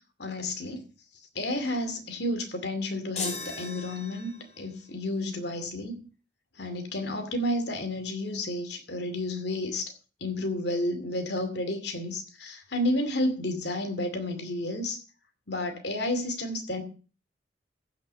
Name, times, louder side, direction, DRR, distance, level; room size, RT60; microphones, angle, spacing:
voice 1, 0.2-0.8 1.3-4.3 4.6-6.0 6.6-9.9 10.2-15.0 15.5-16.8, left 1 dB, 60° left, 7 dB, 2.4 m, -31 dB
sound 1, 3.2-4.6, left 3 dB, 35° left, 2.9 m, -37 dB
15.0 x 6.2 x 6.6 m, 0.36 s
head